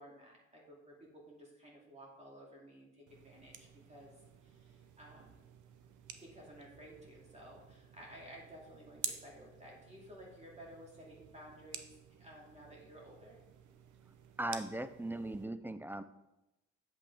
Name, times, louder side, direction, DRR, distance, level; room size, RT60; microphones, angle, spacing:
voice 1, 0.0-4.1 4.4-5.4 6.2-11.9 12.2-13.4, equal, 20° right, -3 dB, 2.3 m, -54 dB
sound 1, 3.1-15.5, right 9 dB, 80° right, 0.8 m, -51 dB
voice 2, 14.4-16.0, right 1 dB, 5° right, 12 dB, 0.4 m, -38 dB
8.5 x 7.3 x 3.4 m, 0.93 s
cardioid pair, 90°, 30 cm